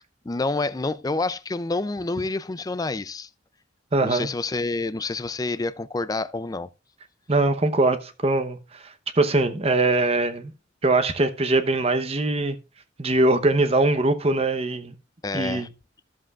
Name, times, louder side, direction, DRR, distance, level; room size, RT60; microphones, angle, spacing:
voice 1, 0.2-3.3 4.0-6.7 15.2-15.7, left 3 dB, 20° left, 0.4 m, -28 dB
voice 2, 3.9-4.3 7.3-10.5 10.8-12.6 13.0-14.9 15.3-15.7, right 2 dB, 30° right, 0.9 m, -22 dB
13.5 x 7.5 x 2.4 m
head